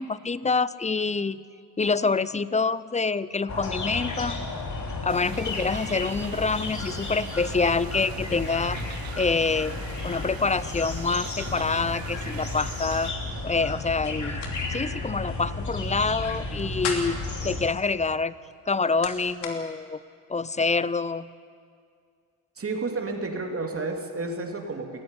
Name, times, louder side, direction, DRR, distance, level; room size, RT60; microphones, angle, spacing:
voice 1, 0.0-1.4 1.8-4.4 5.0-9.8 10.0-13.1 13.4-14.4 14.7-17.2 17.4-18.4 18.7-20.0 20.3-21.3, left 4 dB, 15° left, 17 dB, 0.6 m, -26 dB
sound 1, 3.5-17.6, left 2 dB, 45° left, 3.3 m, -33 dB
sound 2, 5.1-13.1, right 10 dB, 60° right, 1.0 m, -43 dB
sound 3, 14.0-14.6 14.9-15.0 16.4-17.3 18.4-19.6, left 5 dB, 75° left, 2.9 m, -35 dB
voice 2, 22.6-25.0, right 3 dB, 35° right, 3 dB, 2.9 m, -31 dB
18.0 x 14.5 x 9.9 m, 2.2 s
cardioid pair, 80°, 41 cm